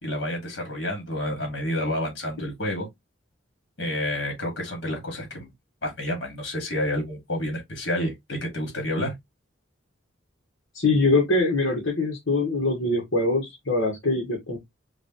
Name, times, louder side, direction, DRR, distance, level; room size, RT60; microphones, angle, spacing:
voice 1, 0.0-2.9 3.8-5.5 5.8-9.1, left 1 dB, 60° left, 2.5 m, -29 dB
voice 2, 10.8-14.6, left 2 dB, 75° left, 1.8 m, -23 dB
5.1 x 3.0 x 3.1 m
head